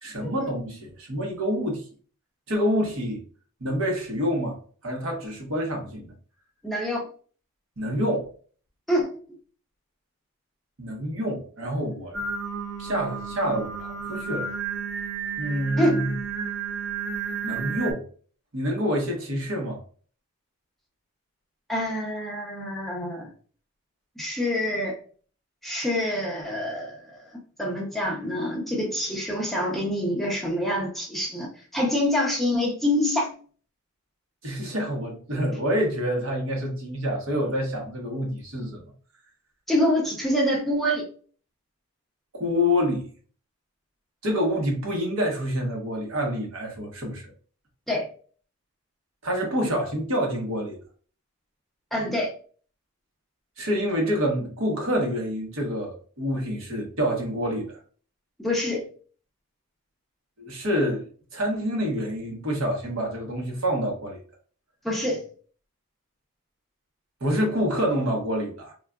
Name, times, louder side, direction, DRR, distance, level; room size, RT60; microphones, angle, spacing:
voice 1, 0.0-1.8 2.5-3.2 3.6-4.6 4.8-6.1 7.8-8.3 10.8-12.2 12.8-14.5 15.4-16.1 17.4-18.0 18.5-19.8 34.4-38.8 42.3-43.1 44.2-47.3 49.2-50.8 53.6-57.8 60.4-64.2 67.2-68.7, equal, 65° right, 1.0 m, -27 dB
voice 2, 6.6-7.1 8.9-9.1 15.8-16.1 21.7-23.3 24.2-25.0 25.6-33.3 39.7-41.1 47.9-48.1 51.9-52.3 58.4-58.9 64.8-65.2, left 1 dB, ahead, 0.6 m, -26 dB
Singing, 12.1-17.9, right 5 dB, 85° right, 0.5 m, -32 dB
3.7 x 2.4 x 2.2 m
head